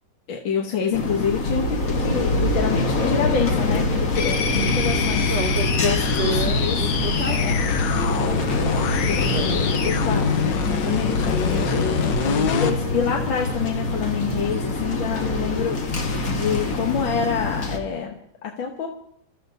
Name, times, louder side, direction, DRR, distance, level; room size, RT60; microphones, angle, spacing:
voice 1, 0.3-5.3 5.8-6.8 7.3-7.6 9.0-11.9 12.2-15.8 16.3-18.9, left 7 dB, 85° left, 1 dB, 1.9 m, -27 dB
sound 1, 0.9-17.8, left 2 dB, 50° left, 1.8 m, -24 dB
sound 2, 4.2-12.8, left 5 dB, 70° left, 1.5 m, -25 dB
voice 2, 4.5-7.4 7.9-8.4 9.3-9.9, right 4 dB, 60° right, 6 dB, 0.7 m, -31 dB
27.5 x 13.5 x 2.7 m, 0.69 s
omnidirectional pair, 2.1 m